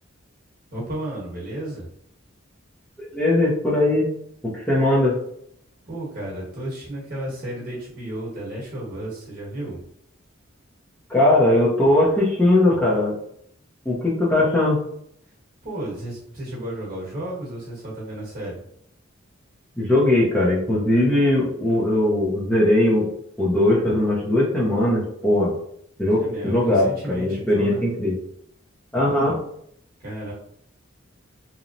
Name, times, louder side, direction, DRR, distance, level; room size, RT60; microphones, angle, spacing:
voice 1, 0.7-1.9 5.9-9.8 15.6-18.6 26.2-27.8 30.0-30.3, right 1 dB, 45° right, -4 dB, 1.0 m, -33 dB
voice 2, 3.0-4.1 4.4-5.1 11.1-13.2 13.9-14.8 19.8-23.1 23.4-25.5 26.0-28.1 28.9-29.3, left 1 dB, 10° left, -7 dB, 0.5 m, -19 dB
2.8 x 2.0 x 2.5 m, 0.69 s
head